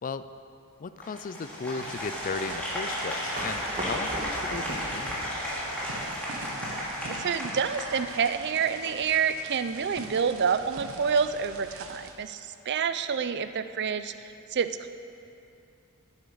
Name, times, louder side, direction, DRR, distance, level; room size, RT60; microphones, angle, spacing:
voice 1, 0.8-5.2, left 4 dB, 35° left, 13 dB, 0.4 m, -36 dB
Applause, 1.0-8.6, equal, 5° left, 2.9 m, -34 dB
sound 1, 1.8-12.1, right 3 dB, 70° right, 1.1 m, -44 dB
sound 2, 3.4-6.4, right 1 dB, 35° right, 1.6 m, -37 dB
voice 2, 7.1-14.9, right 6 dB, 50° right, 11 dB, 0.5 m, -28 dB
10.0 x 9.9 x 6.5 m, 2.6 s
head